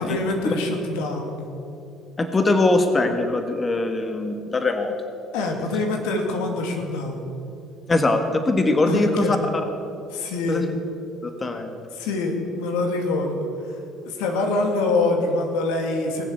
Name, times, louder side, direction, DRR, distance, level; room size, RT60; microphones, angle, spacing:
voice 1, 0.0-1.5 5.3-7.3 8.9-9.4 10.1-10.7 11.9-13.7 14.0-16.2, left 2 dB, 85° left, 3 dB, 2.4 m, -25 dB
voice 2, 2.2-4.9 7.9-9.6 10.5-10.6 11.2-11.7, left 2 dB, 25° left, 6 dB, 1.5 m, -22 dB
20.5 x 7.4 x 8.1 m, 2.6 s
supercardioid pair, 75°, 0 cm